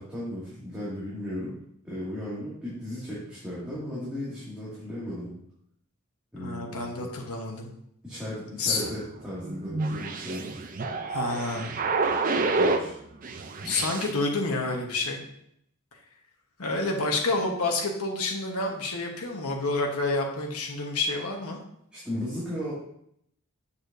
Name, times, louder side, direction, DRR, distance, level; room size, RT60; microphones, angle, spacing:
voice 1, 0.0-1.6 1.8-5.3 6.3-7.1 8.0-10.5 12.3-13.0 21.9-22.7, left 1 dB, 5° right, -11 dB, 2.1 m, -36 dB
voice 2, 6.4-7.7 8.6-8.8 11.1-11.8 13.6-15.2 16.6-21.6, left 3 dB, 85° left, 1 dB, 1.1 m, -29 dB
sound 1, 8.8-12.9 13.2-14.1, right 3 dB, 40° right, 0.5 m, -28 dB
6.9 x 6.5 x 2.6 m, 0.72 s
head